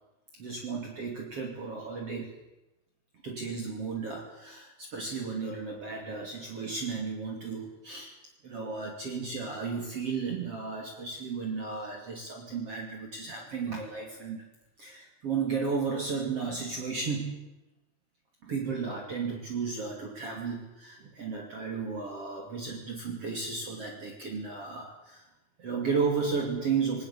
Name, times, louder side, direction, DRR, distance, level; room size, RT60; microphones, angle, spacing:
voice 1, 0.4-2.3 3.2-8.1 8.4-14.4 14.8-17.4 18.4-25.3 25.6-27.0, right 5 dB, 40° right, 0 dB, 3.4 m, -34 dB
19.5 x 18.5 x 8.5 m, 1.0 s
omnidirectional pair, 4.6 m